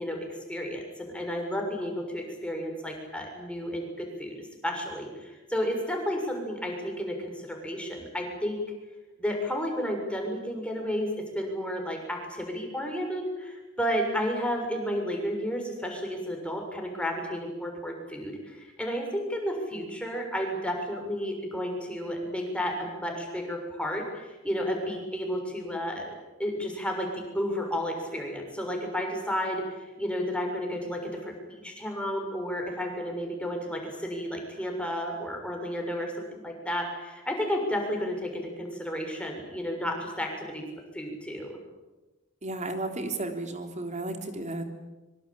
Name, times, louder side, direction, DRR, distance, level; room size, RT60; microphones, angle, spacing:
voice 1, 0.0-8.6 9.2-11.1 11.3-26.1 26.4-40.7 40.9-41.6, equal, 5° left, 1 dB, 6.6 m, -32 dB
voice 2, 42.4-44.6, right 2 dB, 35° right, 6 dB, 3.6 m, -33 dB
25.0 x 24.0 x 8.9 m, 1.1 s
head